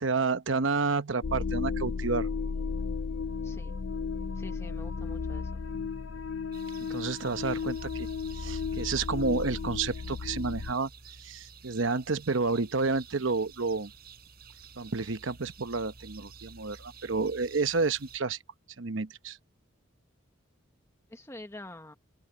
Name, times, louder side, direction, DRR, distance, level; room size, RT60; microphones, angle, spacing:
voice 1, 0.0-2.3 6.9-8.1 8.4-10.9 11.2-13.9 14.8-18.4 18.8-19.4, right 4 dB, 70° right, 0.9 m, -30 dB
sound 1, 1.2-10.7, left 5 dB, 70° left, 0.5 m, -34 dB
voice 2, 3.4-3.8 4.3-5.9 21.1-21.9, left 1 dB, 15° left, 1.0 m, -47 dB
sound 2, 6.5-18.2, right 5 dB, 50° right, 4.0 m, -51 dB
open air
head